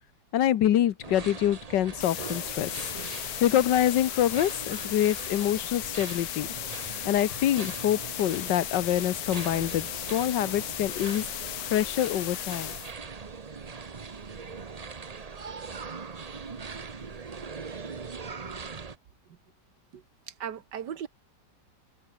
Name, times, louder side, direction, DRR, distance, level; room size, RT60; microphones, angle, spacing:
voice 1, 0.3-2.7 3.4-6.5 7.1-11.2 11.7-12.8, left 11 dB, 80° left, 1.6 m, -26 dB
sound 1, 1.0-19.0, right 5 dB, 30° right, 0.8 m, -41 dB
sound 2, 2.0-12.9, left 12 dB, 65° left, 1.1 m, -36 dB
voice 2, 19.9-21.1, right 8 dB, 75° right, 1.9 m, -38 dB
omnidirectional pair, 1.9 m